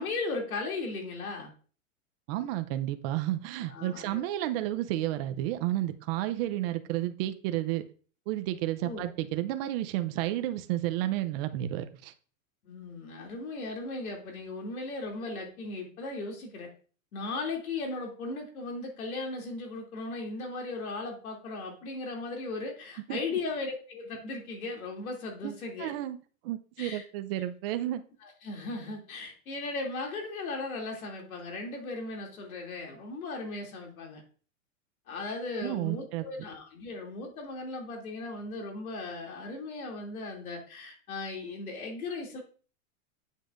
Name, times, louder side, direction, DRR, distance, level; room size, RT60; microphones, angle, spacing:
voice 1, 0.0-1.5 3.7-4.2 8.8-9.0 12.6-16.7 17.1-25.9 26.8-27.0 28.2-34.2 35.1-42.4, left 3 dB, 90° left, 1 dB, 2.9 m, -37 dB
voice 2, 2.3-7.8 8.3-12.1 23.1-23.2 25.4-25.5 25.8-26.2 26.4-28.0 35.6-36.3, right 14 dB, 45° right, 9 dB, 0.7 m, -31 dB
8.2 x 7.2 x 2.6 m, 0.40 s
supercardioid pair, 145°, 42 cm